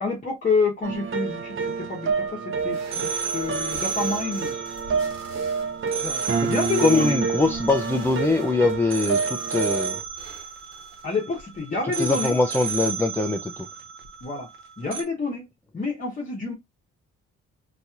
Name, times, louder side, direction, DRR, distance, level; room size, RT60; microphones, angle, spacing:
voice 1, 0.0-4.6 6.0-7.2 11.0-12.4 14.2-14.5 14.8-15.5 15.7-16.5, left 4 dB, 25° left, 0.9 m, -28 dB
sound 1, 0.8-11.5 11.9-14.6 14.9-15.0, right 5 dB, 45° right, 0.8 m, -28 dB
sound 2, 2.6-11.1, right 4 dB, 65° right, 1.5 m, -45 dB
voice 2, 6.8-10.0 12.0-13.7, left 3 dB, 10° left, 0.4 m, -23 dB
4.0 x 2.9 x 2.4 m
cardioid pair, 105°, 30 cm